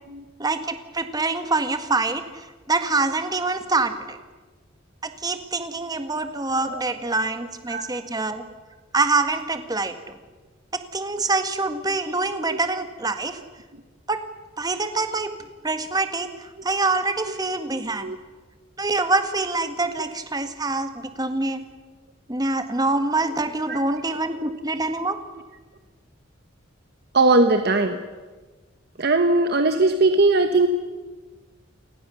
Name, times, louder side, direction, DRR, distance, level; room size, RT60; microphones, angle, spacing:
voice 1, 0.4-4.2 5.0-8.4 8.9-10.2 10.7-13.4 14.1-14.2 14.6-15.3 15.6-18.1 18.8-21.6 22.3-25.2, right 3 dB, 20° right, 8 dB, 1.7 m, -25 dB
voice 2, 27.1-28.0 29.0-30.7, right 2 dB, 50° right, 7 dB, 1.3 m, -19 dB
29.0 x 19.0 x 7.0 m, 1.3 s
head